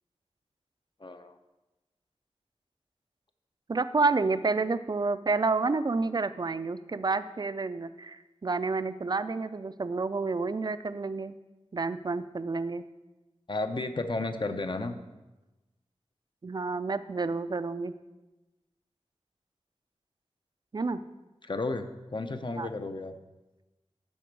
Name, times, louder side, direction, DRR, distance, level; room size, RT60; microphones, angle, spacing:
voice 1, 1.0-1.4 13.5-15.0 21.4-23.1, left 2 dB, 45° left, 7 dB, 0.6 m, -33 dB
voice 2, 3.7-11.3 11.7-12.8 16.4-17.9 20.7-21.0 22.6-22.7, right 3 dB, 40° right, 13 dB, 0.4 m, -29 dB
11.5 x 4.4 x 4.6 m, 1.1 s
wide cardioid pair, 70°, 11 cm